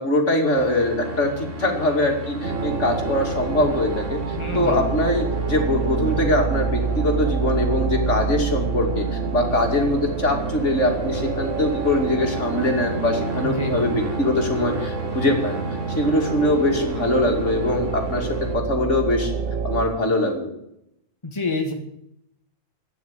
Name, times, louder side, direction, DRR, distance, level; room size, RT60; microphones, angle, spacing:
voice 1, 0.0-18.3 18.5-19.3 19.6-20.5, left 1 dB, 60° left, 2 dB, 3.0 m, -22 dB
sound 1, 0.5-18.6, equal, 65° right, 2.9 m, -34 dB
sound 2, 2.4-19.8, right 5 dB, 80° right, 1.6 m, -27 dB
voice 2, 4.3-4.8 13.4-13.8 21.2-21.7, left 2 dB, 20° left, 2 dB, 1.9 m, -27 dB
12.5 x 9.6 x 9.5 m, 0.78 s
omnidirectional pair, 1.4 m